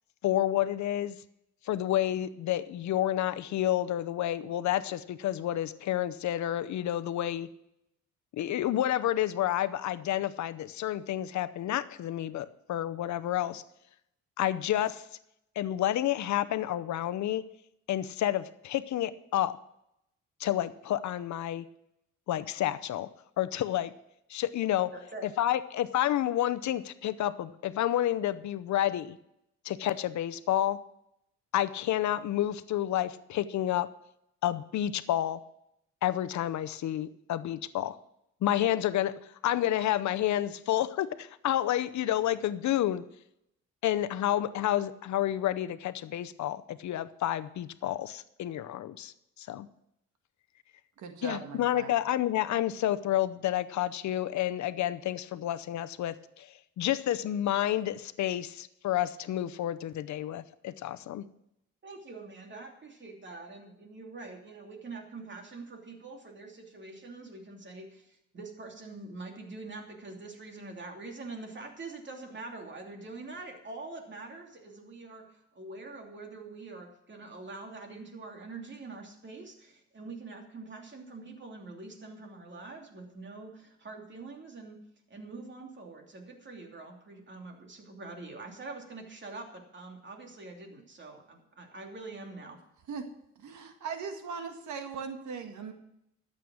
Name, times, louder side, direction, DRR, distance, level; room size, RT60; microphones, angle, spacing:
voice 1, 0.2-1.2 1.7-7.5 8.4-13.6 14.4-15.0 15.6-17.4 17.9-19.5 20.4-21.6 22.3-23.1 23.4-23.9 24.3-24.9 25.4-29.2 29.6-30.8 31.5-33.9 34.4-35.4 36.0-38.0 38.4-39.1 39.4-43.0 43.8-49.1 49.4-49.7 51.2-61.2, left 12 dB, 70° left, 13 dB, 0.7 m, -30 dB
voice 2, 24.9-25.3 61.8-84.8 85.1-92.6, right 3 dB, 40° right, 2 dB, 2.9 m, -45 dB
voice 3, 51.0-51.9 92.9-93.1 93.4-95.7, right 5 dB, 75° right, 6 dB, 1.8 m, -39 dB
12.5 x 7.8 x 6.3 m, 0.80 s
cardioid pair, 90°, 30 cm